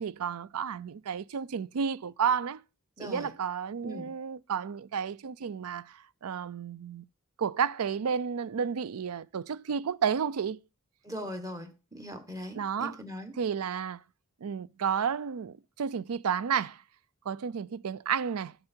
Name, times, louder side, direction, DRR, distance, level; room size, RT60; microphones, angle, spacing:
voice 1, 0.0-2.6 3.0-7.0 7.4-10.6 12.5-13.0 13.4-14.0 14.4-16.8 17.3-18.6, right 7 dB, 85° right, 0.5 m, -31 dB
voice 2, 3.0-3.3 3.8-4.1 11.0-13.3, equal, 15° right, 1.3 m, -40 dB
12.5 x 6.6 x 4.5 m
head